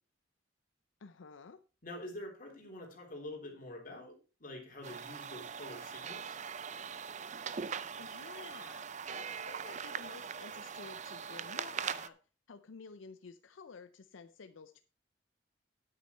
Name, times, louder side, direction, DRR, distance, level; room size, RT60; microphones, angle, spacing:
voice 1, 1.0-1.6 8.0-12.2 12.5-14.8, left 4 dB, 85° left, 11 dB, 0.6 m, -52 dB
voice 2, 1.8-6.4, left 1 dB, 45° left, 1 dB, 3.5 m, -46 dB
sound 1, 4.8-12.1, right 6 dB, 40° right, 0.5 m, -41 dB
9.6 x 8.3 x 4.4 m, 0.35 s
head